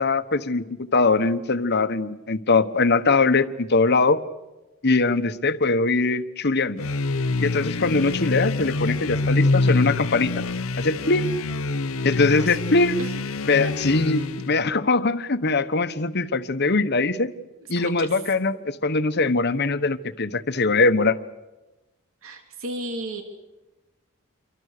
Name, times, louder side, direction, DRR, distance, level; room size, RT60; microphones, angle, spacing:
voice 1, 0.0-4.2 4.8-6.8 7.4-10.4 10.8-11.3 12.0-13.0 13.5-17.3 17.7-21.2, left 3 dB, 50° left, 11 dB, 1.2 m, -22 dB
sound 1, 6.8-14.6, left 3 dB, 75° left, 0.8 m, -26 dB
voice 2, 12.1-12.6 13.0-13.2 13.6-13.7 14.1-14.2 17.5-18.1 22.2-23.2, right 1 dB, 75° right, 4 dB, 3.2 m, -35 dB
28.5 x 24.0 x 6.8 m, 1.0 s
head